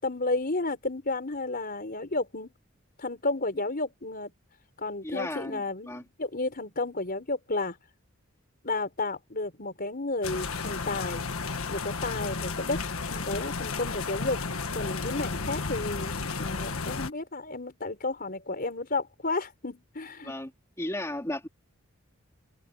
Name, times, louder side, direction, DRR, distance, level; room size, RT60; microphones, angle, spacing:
voice 1, 0.0-2.5 3.0-4.3 4.8-7.8 8.6-11.2 11.7-12.8 13.1-14.4 14.7-20.3, left 2 dB, 45° left, 4.8 m, -32 dB
voice 2, 5.0-6.0 20.2-20.5 20.8-21.5, left 1 dB, 15° left, 2.8 m, -35 dB
sound 1, 10.2-17.1, left 4 dB, 90° left, 1.5 m, -33 dB
open air
head